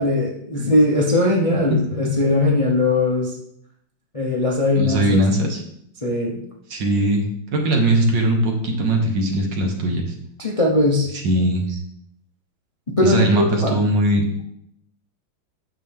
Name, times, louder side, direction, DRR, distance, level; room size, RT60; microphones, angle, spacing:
voice 1, 0.0-3.4 4.1-5.2 6.0-6.4 10.4-11.1 13.0-13.8, left 2 dB, 30° left, -2 dB, 0.7 m, -19 dB
voice 2, 4.7-5.6 6.7-7.3 7.5-10.1 11.2-11.8 13.0-14.2, right 1 dB, 65° right, 2 dB, 2.0 m, -20 dB
8.9 x 6.6 x 3.6 m, 0.73 s
omnidirectional pair, 2.1 m